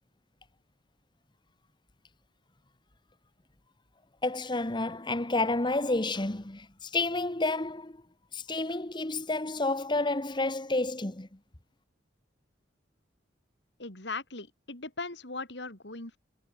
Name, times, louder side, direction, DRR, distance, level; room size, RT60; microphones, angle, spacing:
voice 1, 4.2-7.9 8.3-11.3, left 2 dB, 25° left, 1.3 m, -30 dB
voice 2, 13.8-16.2, left 3 dB, 65° left, 3.6 m, -39 dB
head